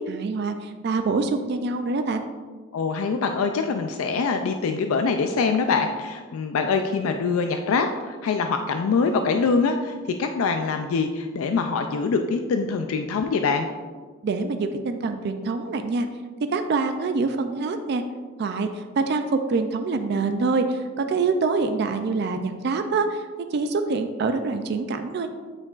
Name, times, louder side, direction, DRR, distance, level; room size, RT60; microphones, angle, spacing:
voice 1, 0.0-2.2 14.2-16.1 16.5-18.0 18.4-25.3, right 4 dB, 50° right, 7 dB, 0.3 m, -25 dB
voice 2, 2.7-9.9 10.2-13.7, left 4 dB, 80° left, 6 dB, 0.4 m, -24 dB
8.7 x 4.4 x 2.4 m, 1.5 s
head